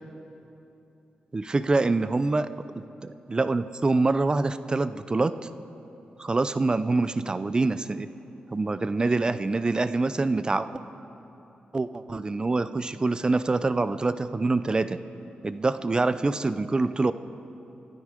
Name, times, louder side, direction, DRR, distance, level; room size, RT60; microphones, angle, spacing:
voice 1, 1.3-2.5 2.8-5.3 6.2-8.1 8.5-10.7 11.7-15.0 15.4-17.1, right 3 dB, 25° right, 13 dB, 0.5 m, -25 dB
24.5 x 12.0 x 5.0 m, 2.9 s
cardioid pair, 90°, 3 cm